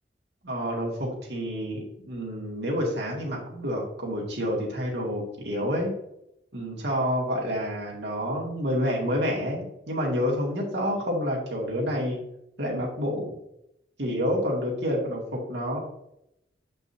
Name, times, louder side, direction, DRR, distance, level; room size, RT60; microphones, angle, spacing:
voice 1, 0.4-5.9 6.5-12.2 12.6-13.4 14.0-15.8, equal, 70° right, -3 dB, 2.3 m, -28 dB
8.4 x 5.4 x 2.8 m, 0.79 s
head